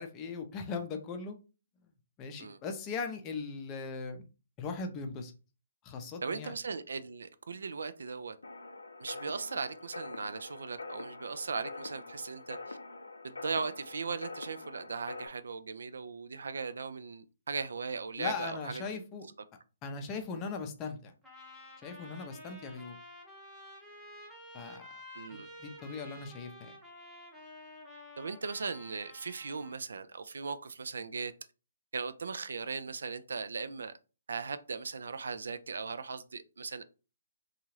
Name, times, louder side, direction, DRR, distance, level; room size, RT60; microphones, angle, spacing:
voice 1, 0.0-1.4 2.2-4.2 4.6-5.3 5.8-6.5 18.2-19.3 19.8-21.1 21.8-23.0 24.5-24.8 25.3-26.7, left 4 dB, 25° left, 0.5 m, -39 dB
voice 2, 6.2-8.4 9.0-12.8 13.2-18.8 25.1-25.5 28.2-31.3 31.9-33.9 34.3-36.8, right 4 dB, 70° right, 0.3 m, -38 dB
sound 1, 8.4-15.3, left 3 dB, 85° left, 0.4 m, -45 dB
Trumpet, 21.2-29.8, left 1 dB, 5° right, 0.8 m, -51 dB
2.7 x 2.4 x 3.1 m
figure-of-eight pair, 140°, 0 cm